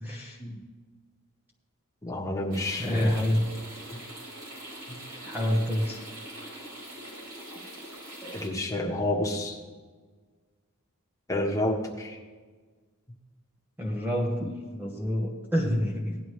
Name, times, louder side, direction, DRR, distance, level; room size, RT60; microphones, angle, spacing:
voice 1, 0.0-0.4 2.8-3.5 5.2-6.0 13.8-16.2, equal, 10° right, -1 dB, 1.0 m, -28 dB
voice 2, 2.0-3.1 4.9-5.0 8.2-9.6 11.3-12.2, left 1 dB, 15° left, -1 dB, 1.5 m, -29 dB
sound 1, 2.5-8.5, right 1 dB, 85° right, 4.4 m, -43 dB
17.5 x 11.0 x 3.3 m, 1.4 s
head